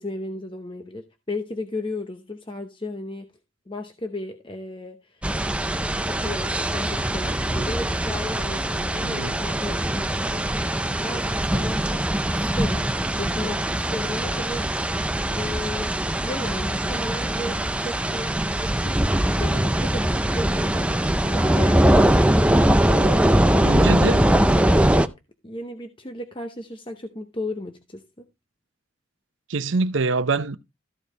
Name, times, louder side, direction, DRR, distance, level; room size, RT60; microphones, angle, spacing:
voice 1, 0.0-3.3 3.7-5.4 6.1-12.9 13.2-19.1 19.4-20.1 20.3-25.1 25.4-28.3, left 1 dB, 25° left, 0.9 m, -35 dB
sound 1, 5.2-25.1, right 1 dB, 5° right, 0.4 m, -22 dB
voice 2, 9.0-9.4 23.6-24.2 29.5-30.6, right 3 dB, 70° right, 0.7 m, -24 dB
14.0 x 5.1 x 3.9 m
head